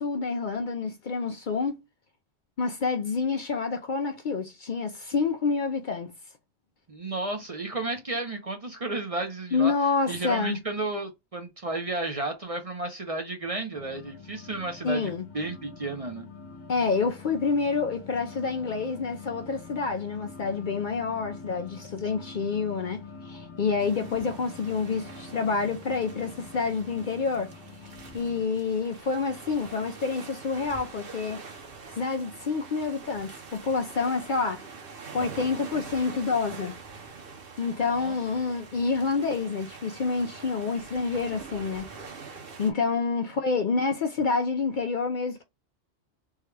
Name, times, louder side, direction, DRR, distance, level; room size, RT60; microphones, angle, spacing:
voice 1, 0.0-1.8 2.6-6.1 9.5-10.6 14.8-15.3 16.7-27.6 27.8-31.4 31.9-34.6 35.1-36.8 37.6-41.9 42.6-45.4, left 4 dB, 55° left, 0.6 m, -28 dB
voice 2, 6.9-9.7 10.1-16.3 23.8-24.2 38.0-38.1, right 2 dB, 40° right, 0.6 m, -33 dB
sound 1, 13.7-28.4, left 4 dB, 75° left, 1.1 m, -45 dB
sound 2, 23.8-42.7, right 4 dB, 55° right, 1.1 m, -44 dB
3.6 x 2.2 x 3.2 m
omnidirectional pair, 1.2 m